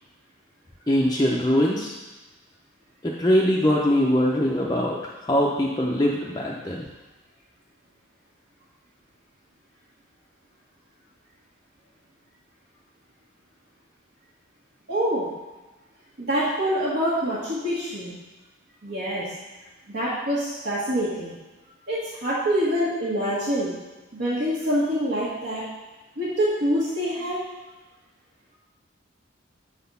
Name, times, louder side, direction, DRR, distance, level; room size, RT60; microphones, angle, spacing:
voice 1, 0.9-1.9 3.0-5.0 5.2-6.9, equal, 20° left, -3 dB, 0.6 m, -22 dB
voice 2, 14.9-15.3 16.2-18.1 18.8-19.2 19.9-21.3 21.9-23.7 24.1-25.6 26.2-27.4, equal, 55° right, -10 dB, 1.6 m, -25 dB
7.7 x 4.1 x 5.4 m, 1.2 s
head